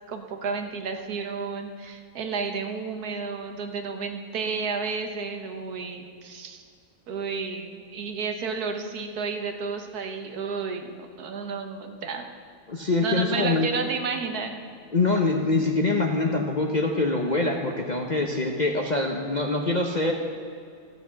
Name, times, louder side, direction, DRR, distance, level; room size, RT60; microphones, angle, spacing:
voice 1, 0.1-6.6 7.1-12.3 13.0-14.6, right 5 dB, 70° right, 5 dB, 1.5 m, -31 dB
voice 2, 12.7-13.7 14.9-20.1, left 3 dB, 40° left, 2 dB, 0.7 m, -24 dB
13.5 x 6.5 x 7.5 m, 2.3 s
omnidirectional pair, 1.7 m